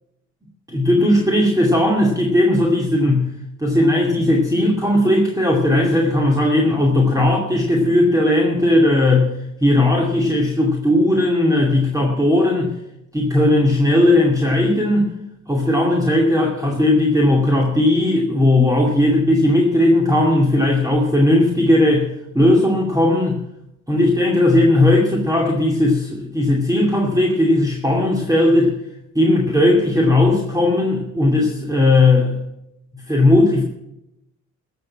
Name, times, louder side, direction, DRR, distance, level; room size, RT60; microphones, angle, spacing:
voice 1, 0.7-3.3 3.6-9.3 9.6-12.7 13.1-15.1 15.5-22.1 22.3-23.4 23.9-28.7 29.1-32.3 33.1-33.6, left 1 dB, 10° right, 0 dB, 2.4 m, -17 dB
15.0 x 6.8 x 8.5 m, 0.84 s
cardioid pair, 90°, 30 cm